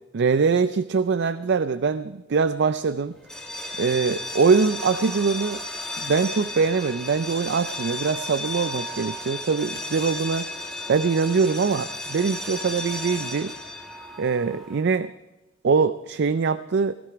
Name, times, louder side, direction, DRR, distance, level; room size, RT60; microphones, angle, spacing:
voice 1, 0.1-3.2 3.8-5.6 6.0-13.5 14.2-15.1 15.6-16.9, right 5 dB, 55° right, 13 dB, 0.4 m, -23 dB
sound 1, 3.2-14.9, left 2 dB, 5° left, 1.4 m, -34 dB
18.0 x 13.5 x 4.9 m, 1.1 s
head